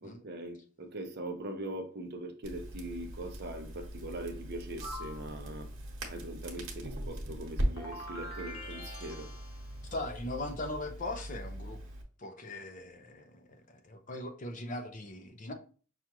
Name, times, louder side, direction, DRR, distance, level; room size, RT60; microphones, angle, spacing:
voice 1, 0.0-5.7 6.1-9.3, right 1 dB, 45° right, 0.6 m, -41 dB
Crackle, 2.4-12.0, right 1 dB, 65° right, 1.1 m, -40 dB
sound 1, 4.8-5.3 7.8-9.9, left 1 dB, 75° left, 0.9 m, -44 dB
voice 2, 9.9-11.8 12.2-15.5, left 2 dB, 35° left, 0.5 m, -40 dB
5.8 x 2.4 x 2.9 m
head